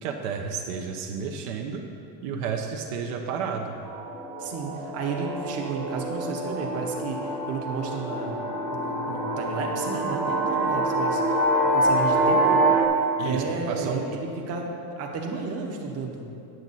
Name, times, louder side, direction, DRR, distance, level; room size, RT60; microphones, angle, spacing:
voice 1, 0.0-1.8 2.2-3.8 13.2-14.0, right 6 dB, 65° right, 3 dB, 0.8 m, -31 dB
sound 1, 3.9-12.9, right 1 dB, ahead, 0.7 m, -26 dB
voice 2, 4.4-12.6 13.2-14.7 15.0-16.2, right 4 dB, 35° right, 0 dB, 1.0 m, -32 dB
9.2 x 7.2 x 4.1 m, 2.6 s
cardioid pair, 165°, 46 cm